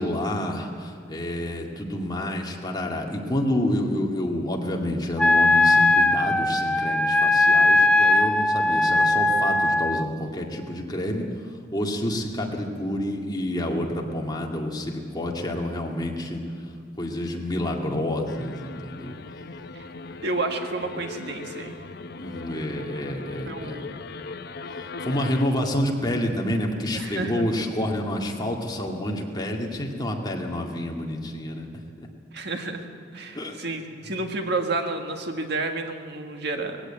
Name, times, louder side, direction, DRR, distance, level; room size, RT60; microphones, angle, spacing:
voice 1, 0.0-11.2 11.7-16.4 17.0-19.1 22.2-23.8 24.7-31.7 32.0-32.1 33.3-33.6, left 1 dB, 25° left, 0 dB, 2.2 m, -28 dB
Wind instrument woodwind instrument, 5.2-10.1, left 2 dB, 5° left, 0.5 m, -19 dB
sound 1, 18.3-25.4, left 3 dB, 60° left, 0.9 m, -39 dB
voice 2, 20.2-21.8 23.5-23.9 26.9-27.5 32.3-32.9 33.1-36.9, right 2 dB, 65° right, 4 dB, 1.8 m, -30 dB
20.0 x 16.0 x 8.8 m, 2.3 s
head